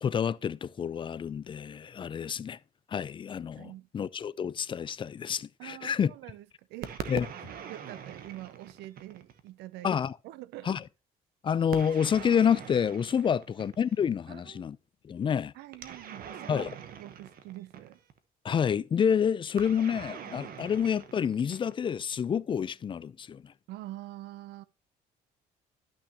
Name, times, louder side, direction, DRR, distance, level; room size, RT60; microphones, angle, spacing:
voice 1, 0.0-2.6 2.9-6.1 7.1-7.3 9.8-10.1 10.7-10.8 11.4-14.8 15.0-15.5 16.5-16.7 18.4-23.5, left 7 dB, 30° left, 0.4 m, -28 dB
voice 2, 3.6-3.9 5.6-6.9 7.5-9.9 10.2-10.8 14.3-14.7 15.5-16.7 16.9-18.0 23.7-24.6, right 16 dB, 85° right, 0.6 m, -45 dB
sound 1, 6.8-9.5 11.7-14.1 15.7-18.2 19.6-22.0, right 8 dB, 60° right, 1.1 m, -43 dB
11.5 x 6.1 x 2.9 m
cardioid pair, 110°, 17 cm